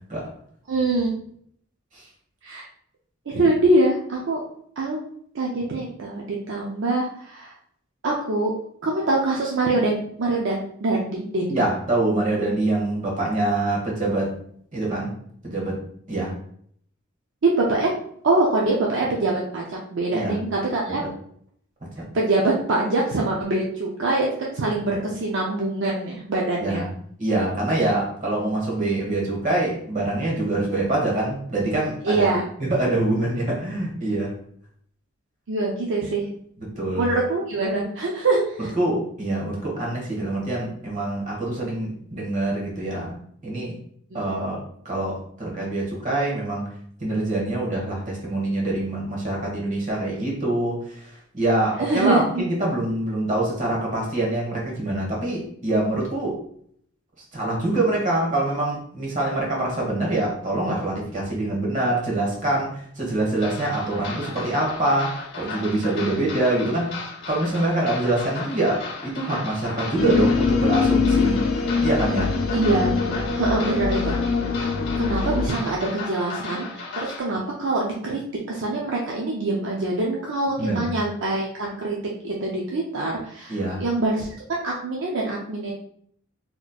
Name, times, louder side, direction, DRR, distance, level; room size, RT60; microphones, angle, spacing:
voice 1, 0.7-1.1 2.4-2.6 3.3-4.4 4.8-5.0 5.3-7.5 8.0-8.5 8.8-11.7 17.4-17.9 18.2-21.0 22.1-26.8 32.0-32.4 35.5-36.3 37.0-38.7 44.1-44.5 51.8-52.4 66.0-66.3 72.5-72.9 73.4-74.2 75.0-78.2 78.5-82.0 82.2-85.7, right 2 dB, 65° right, -3 dB, 0.5 m, -24 dB
voice 2, 11.5-14.3 14.7-15.1 15.4-15.8 16.1-16.3 20.1-20.4 21.0-21.1 22.0-22.1 26.6-26.9 27.2-34.3 36.6-37.1 38.7-43.1 43.4-43.7 44.1-46.7 47.0-56.4 57.3-67.0 67.3-71.4 71.8-72.3 80.6-80.9 83.5-83.8, right 2 dB, 40° right, -3 dB, 1.2 m, -25 dB
sound 1, 63.3-77.2, left 4 dB, 55° left, 0.8 m, -36 dB
sound 2, 70.0-75.5, left 4 dB, 85° left, 0.5 m, -23 dB
4.1 x 3.0 x 2.3 m, 0.64 s
head